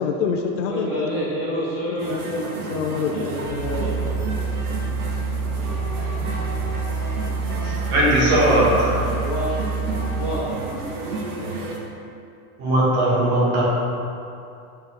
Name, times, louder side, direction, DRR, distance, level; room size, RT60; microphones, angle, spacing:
voice 1, 0.0-1.1 2.1-2.4 2.7-3.4, left 5 dB, 55° left, 2 dB, 0.6 m, -26 dB
voice 2, 0.7-2.1 3.1-4.1 9.2-9.5 10.2-10.5, equal, 5° right, -13 dB, 0.8 m, -28 dB
sound 1, 2.0-11.8, right 2 dB, 75° right, 1.3 m, -32 dB
sound 2, 3.4-10.3, right 4 dB, 55° right, 1.6 m, -27 dB
voice 3, 7.6-9.0 12.6-13.6, right 1 dB, 30° right, -6 dB, 1.5 m, -19 dB
8.8 x 4.3 x 3.6 m, 2.6 s
supercardioid pair, 175°, 46 cm